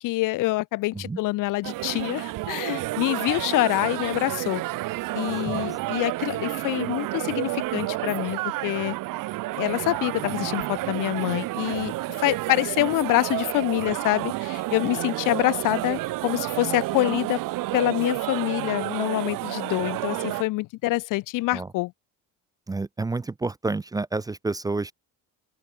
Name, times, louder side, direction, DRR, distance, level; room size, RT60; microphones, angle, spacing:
voice 1, 0.0-4.6 5.1-8.9 9.6-11.9 12.2-17.4 17.7-21.9, left 19 dB, 70° left, 0.6 m, -26 dB
sound 1, 1.6-20.4, right 18 dB, 80° right, 1.1 m, -30 dB
voice 2, 22.7-24.9, right 3 dB, 10° right, 0.5 m, -29 dB
open air
cardioid pair, 155°, 33 cm